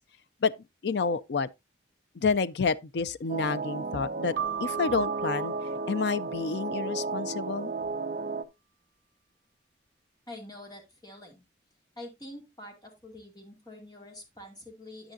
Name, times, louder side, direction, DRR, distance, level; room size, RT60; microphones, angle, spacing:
voice 1, 0.8-1.5 2.2-4.3 4.6-5.5 5.9-7.7, left 5 dB, 60° left, 0.4 m, -29 dB
sound 1, 3.3-8.4, right 3 dB, 45° right, 0.7 m, -34 dB
Keyboard (musical), 4.4-6.9, right 9 dB, 80° right, 0.6 m, -37 dB
voice 2, 10.3-11.4 12.0-15.1, left 1 dB, 20° left, 2.4 m, -46 dB
9.1 x 8.9 x 2.6 m
head